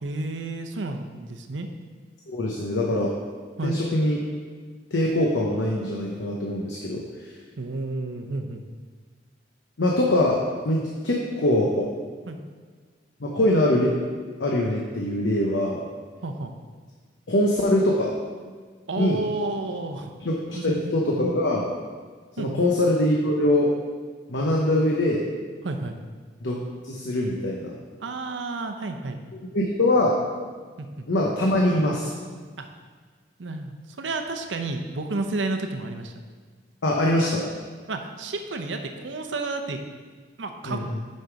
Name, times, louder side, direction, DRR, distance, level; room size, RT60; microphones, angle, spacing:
voice 1, 0.0-1.7 3.6-3.8 7.6-8.6 12.3-12.4 16.2-16.5 18.9-20.1 20.5-20.9 22.4-22.6 25.6-26.0 28.0-29.2 30.8-31.1 32.6-32.7 33.4-36.1 37.9-39.8 40.4-40.8, right 2 dB, 90° right, 6 dB, 0.7 m, -31 dB
voice 2, 2.3-3.1 3.6-4.2 4.9-7.0 9.8-10.4 10.6-11.9 13.2-13.9 14.4-15.8 17.3-18.1 19.0-19.2 20.2-20.3 20.6-21.7 22.4-23.7 24.3-25.2 26.4-26.6 26.8-27.7 29.5-30.2 31.1-32.1 36.8-37.5 40.7-40.8, left 1 dB, 80° left, -2 dB, 0.9 m, -23 dB
6.5 x 5.5 x 4.7 m, 1.5 s
head